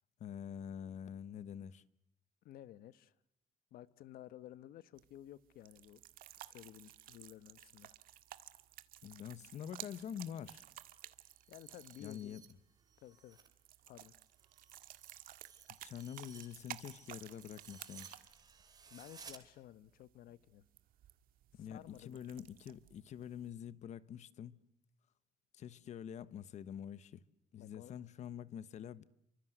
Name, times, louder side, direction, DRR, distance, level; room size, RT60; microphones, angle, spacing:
voice 1, 0.2-1.8 9.0-10.6 12.0-12.4 15.8-18.2 21.6-24.6 25.5-27.2 27.5-29.0, left 9 dB, 50° left, 1.2 m, -46 dB
voice 2, 2.4-3.1 3.7-6.0 6.4-7.9 11.5-12.5 13.0-13.4 13.9-14.1 18.9-20.7 21.5-22.2 27.6-27.9, left 13 dB, 80° left, 1.2 m, -54 dB
sound 1, 5.0-23.5, right 13 dB, 80° right, 1.8 m, -55 dB
sound 2, 11.1-13.5 13.9-19.4, right 6 dB, 25° right, 3.3 m, -59 dB
30.0 x 25.0 x 8.0 m
cardioid pair, 165°, 15 cm